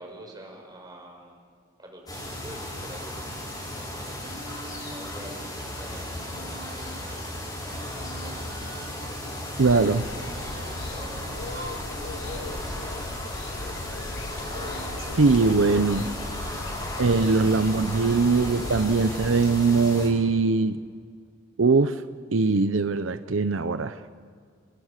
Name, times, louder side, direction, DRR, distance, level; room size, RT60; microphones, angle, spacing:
voice 1, 0.0-1.4 1.8-4.5 4.8-9.7 10.0-11.6 11.8-13.1, right 1 dB, 20° right, 2 dB, 5.1 m, -47 dB
sound 1, 2.1-20.1, left 1 dB, 20° left, 6.8 m, -35 dB
Female singing, 4.2-13.1 13.6-16.6 17.1-19.4, right 1 dB, 50° right, 2.2 m, -46 dB
sound 2, 9.6-19.7, left 3 dB, 75° left, 0.9 m, -38 dB
voice 2, 9.6-10.1 15.1-16.1 17.0-20.8 21.6-22.0 22.3-24.0, right 4 dB, 80° right, 11 dB, 0.7 m, -21 dB
28.0 x 21.0 x 6.6 m, 2.1 s
head